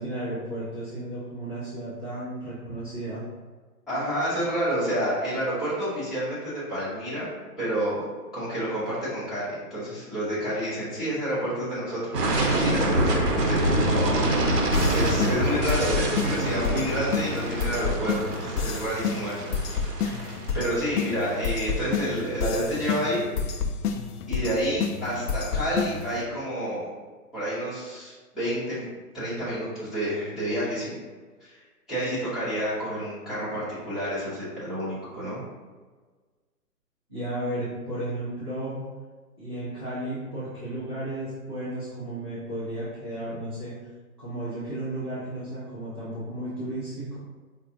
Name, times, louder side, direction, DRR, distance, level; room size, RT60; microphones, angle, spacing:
voice 1, 0.0-3.2 37.1-38.8 39.4-43.7 44.2-47.2, right 1 dB, 15° right, -16 dB, 0.4 m, -33 dB
voice 2, 3.9-8.0 8.3-14.4 14.6-19.5 20.0-23.6 24.3-26.9 27.3-28.9 29.1-30.9 31.4-31.6 31.9-35.4, equal, ahead, -15 dB, 1.0 m, -29 dB
sound 1, 12.1-22.0, right 1 dB, 80° right, 0.9 m, -26 dB
sound 2, 14.7-26.2, left 5 dB, 75° left, 0.5 m, -30 dB
5.0 x 2.3 x 2.7 m, 1.4 s
hypercardioid pair, 140°, 47 cm